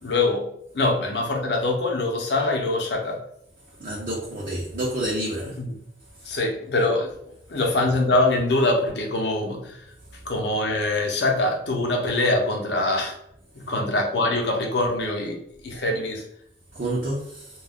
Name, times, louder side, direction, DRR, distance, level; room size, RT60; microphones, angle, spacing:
voice 1, 0.0-3.2 5.5-5.8 6.2-7.1 7.5-9.8 10.3-13.2 13.6-16.2, left 2 dB, 70° left, 0.6 m, -24 dB
voice 2, 3.8-5.5 16.7-17.5, right 1 dB, 45° right, 0.5 m, -28 dB
2.3 x 2.1 x 3.5 m
head